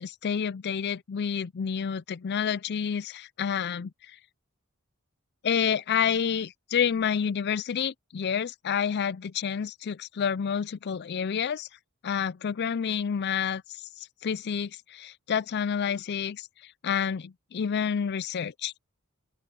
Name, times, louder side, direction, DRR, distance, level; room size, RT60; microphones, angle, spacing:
voice 1, 0.0-3.9 5.4-11.7 12.0-13.6 14.2-16.5 16.8-18.7, left 7 dB, 50° left, 0.4 m, -29 dB
open air
head